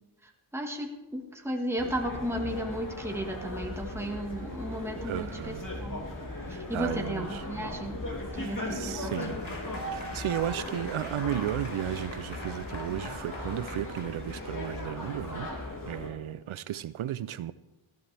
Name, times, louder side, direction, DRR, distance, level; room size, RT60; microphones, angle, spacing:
voice 1, 0.2-6.0 6.5-8.0 8.3-9.4, right 1 dB, 5° right, 1.6 m, -35 dB
sound 1, 1.8-16.1, left 1 dB, 40° left, 3.1 m, -37 dB
voice 2, 5.0-5.7 6.5-7.6 8.3-9.4 9.9-15.5 15.9-17.5, right 11 dB, 75° right, 0.5 m, -34 dB
Applause / Crowd, 9.1-15.9, left 2 dB, 70° left, 3.6 m, -46 dB
18.0 x 13.0 x 3.4 m
wide cardioid pair, 70°, 49 cm